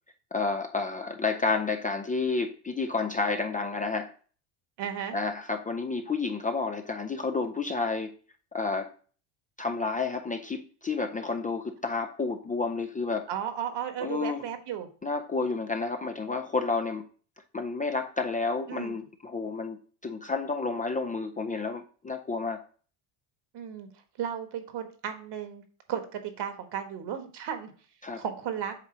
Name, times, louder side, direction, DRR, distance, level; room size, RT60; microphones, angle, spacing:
voice 1, 0.3-4.1 5.1-8.1 8.5-8.9 9.6-13.3 14.0-14.4 15.0-17.0 17.5-22.6 28.0-28.2, left 4 dB, 20° left, 5 dB, 0.4 m, -30 dB
voice 2, 4.8-5.2 13.3-14.9 18.7-18.9 23.5-23.9 24.2-25.6 25.9-27.7 28.2-28.7, right 9 dB, 55° right, 7 dB, 1.4 m, -34 dB
8.1 x 2.7 x 5.9 m, 0.42 s
cardioid pair, 110°, 50 cm